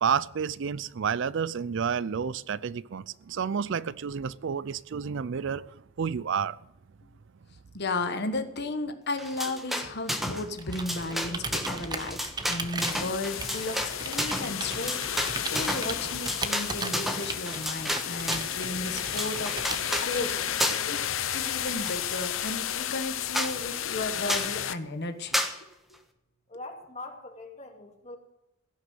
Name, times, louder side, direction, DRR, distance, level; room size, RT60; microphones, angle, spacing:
voice 1, 0.0-6.6, right 6 dB, 60° right, 0.4 m, -30 dB
voice 2, 7.7-25.4, left 2 dB, 55° left, 1.3 m, -34 dB
sound 1, 9.2-10.4 10.7-18.6 19.0-20.1 20.6-21.0 21.3-22.2 22.7-22.8 23.0-23.1 23.3-23.6 24.3-24.5 25.3-25.6, equal, ahead, 1.3 m, -32 dB
Computer keyboard, 10.6-20.9, right 3 dB, 20° right, 1.1 m, -38 dB
sound 2, 12.8-24.7, left 10 dB, 70° left, 0.8 m, -33 dB
voice 3, 26.5-28.2, left 2 dB, 35° left, 2.4 m, -42 dB
16.5 x 6.5 x 9.5 m
head